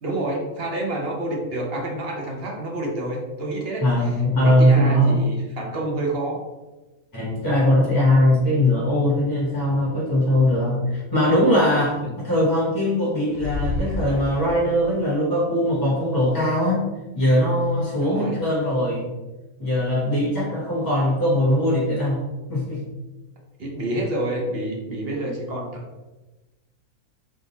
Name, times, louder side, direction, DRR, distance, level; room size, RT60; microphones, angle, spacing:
voice 1, 0.0-4.1 4.4-6.4 12.0-12.1 18.0-18.4 23.6-25.8, right 1 dB, 45° right, -1 dB, 1.0 m, -28 dB
voice 2, 3.8-5.2 7.1-16.9 17.1-19.1 19.6-22.2 22.5-22.8 25.1-25.4, left 1 dB, 15° left, -6 dB, 1.0 m, -20 dB
sound 1, 13.3-14.9, left 2 dB, 35° left, 1.2 m, -29 dB
3.7 x 3.4 x 4.1 m, 1.1 s
omnidirectional pair, 1.5 m